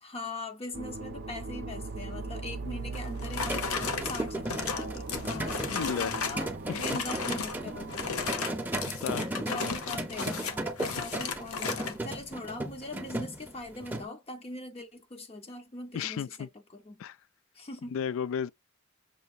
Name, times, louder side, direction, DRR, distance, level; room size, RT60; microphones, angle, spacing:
voice 1, 0.0-8.5 9.4-17.0 17.5-18.0, left 2 dB, 30° left, 0.6 m, -41 dB
sound 1, 0.7-8.3, right 3 dB, 45° right, 0.5 m, -40 dB
sound 2, 2.9-6.4 6.7-7.6 7.9-12.0, left 5 dB, 90° left, 0.9 m, -35 dB
sound 3, 3.5-14.1, right 1 dB, 10° right, 0.7 m, -36 dB
voice 2, 5.7-6.2 6.7-6.8 9.0-9.2 9.6-9.8 15.9-16.5 17.0-17.2 17.9-18.5, left 7 dB, 65° left, 0.3 m, -33 dB
6.4 x 2.7 x 2.4 m
head